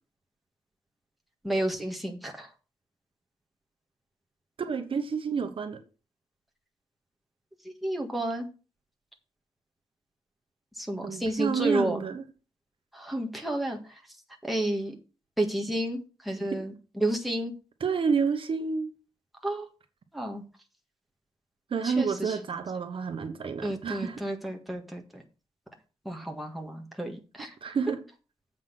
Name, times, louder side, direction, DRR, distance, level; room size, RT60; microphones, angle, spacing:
voice 1, 1.4-2.5 7.6-8.5 10.8-12.0 12.9-14.0 14.4-15.0 15.4-17.5 19.4-19.7 20.1-20.4 21.8-22.4 23.6-25.2 26.1-27.7, right 1 dB, ahead, 0 dB, 1.7 m, -31 dB
voice 2, 4.6-5.8 11.0-12.2 17.8-18.9 21.7-24.2 27.6-28.0, right 5 dB, 60° right, 7 dB, 1.2 m, -29 dB
7.7 x 5.9 x 6.0 m, 0.33 s
wide cardioid pair, 150°, 10 cm